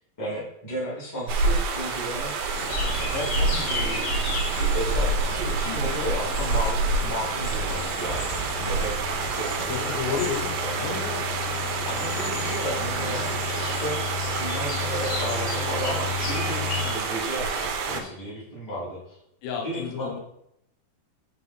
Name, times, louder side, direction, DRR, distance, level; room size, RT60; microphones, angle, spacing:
voice 1, 0.2-2.7 3.1-8.3 8.6-10.1 10.6-11.1 11.9-19.2 19.6-20.1, equal, 15° left, -7 dB, 0.5 m, -34 dB
sound 1, 1.3-18.0, right 4 dB, 90° right, 2.8 m, -28 dB
sound 2, 2.5-16.9, left 5 dB, 60° left, 2.6 m, -33 dB
voice 2, 5.6-6.0 9.7-10.5 10.8-11.2 17.9-18.1 19.4-20.2, left 7 dB, 85° left, 1 dB, 3.2 m, -32 dB
7.3 x 3.8 x 4.2 m, 0.79 s
omnidirectional pair, 4.8 m